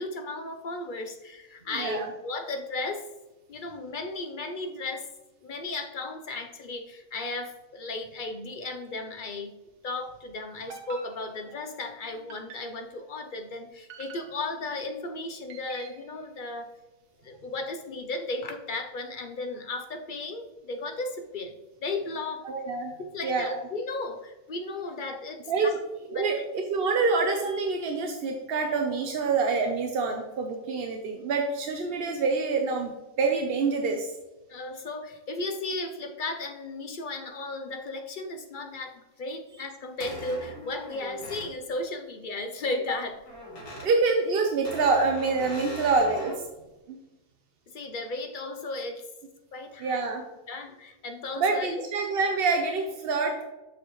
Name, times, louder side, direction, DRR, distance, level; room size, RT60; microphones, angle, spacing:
voice 1, 0.0-3.1 3.5-5.1 5.4-9.5 9.8-16.7 17.2-21.5 21.8-22.4 23.1-25.5 26.1-26.4 34.5-43.2 43.8-43.9 47.7-49.0 49.5-50.0 50.5-51.7, left 2 dB, 60° left, 5 dB, 0.5 m, -35 dB
voice 2, 1.7-2.1 22.4-22.9 23.2-23.6 25.5-25.8 26.1-32.9 33.2-34.1 43.8-46.4 46.9-47.0 49.8-50.2 51.4-53.4, right 4 dB, 55° right, 3 dB, 0.7 m, -26 dB
sound 1, 10.7-11.7 12.3-13.0 13.9-14.7 15.5-16.2, right 5 dB, 90° right, 1.5 m, -47 dB
sound 2, 40.0-41.5 43.2-43.9 44.6-46.4, equal, 80° left, 2.7 m, -40 dB
7.0 x 6.8 x 3.0 m, 1.0 s
omnidirectional pair, 1.6 m